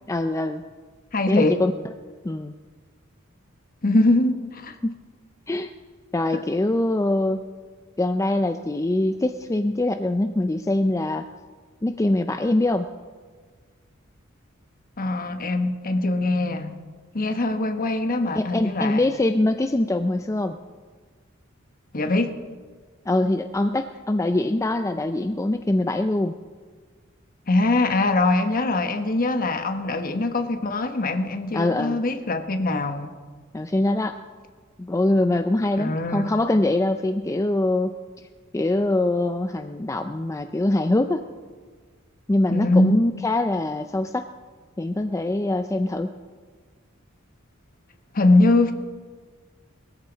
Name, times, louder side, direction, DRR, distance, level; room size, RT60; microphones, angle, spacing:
voice 1, 0.1-0.6 1.3-1.7 2.2-2.6 4.8-5.0 5.5-5.7 6.1-7.4 8.0-11.2 11.8-12.9 18.4-20.6 23.1-26.4 31.5-32.0 33.5-34.2 34.8-37.9 38.5-41.2 42.3-44.3 44.8-46.1, left 2 dB, 15° left, 0.4 m, -23 dB
voice 2, 1.1-1.6 3.8-4.7 6.3-6.4 15.0-16.8 17.1-19.1 21.9-22.3 27.5-33.1 35.8-36.3 42.5-43.0 48.1-48.7, left 2 dB, 45° left, 1.1 m, -22 dB
21.0 x 14.0 x 4.0 m
head